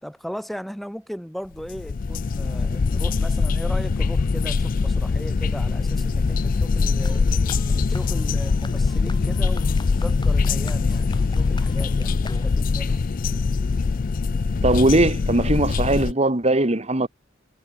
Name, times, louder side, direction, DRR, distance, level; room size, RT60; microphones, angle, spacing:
voice 1, 0.0-7.2 7.7-13.1, equal, ahead, 4.2 m, -37 dB
sound 1, 1.6-16.1, left 4 dB, 45° left, 0.4 m, -22 dB
sound 2, 7.0-12.8, left 2 dB, 20° left, 3.6 m, -43 dB
voice 2, 14.6-17.1, right 2 dB, 30° right, 1.4 m, -20 dB
head